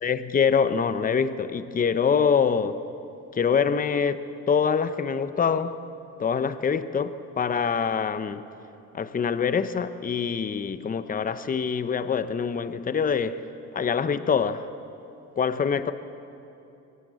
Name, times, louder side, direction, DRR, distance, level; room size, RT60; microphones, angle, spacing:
voice 1, 0.0-2.8 3.3-5.8 6.2-8.5 8.9-13.5 13.7-14.7 15.4-15.9, left 6 dB, 25° left, 0.8 m, -25 dB
23.0 x 18.0 x 8.2 m
cardioid pair, 125°, 32 cm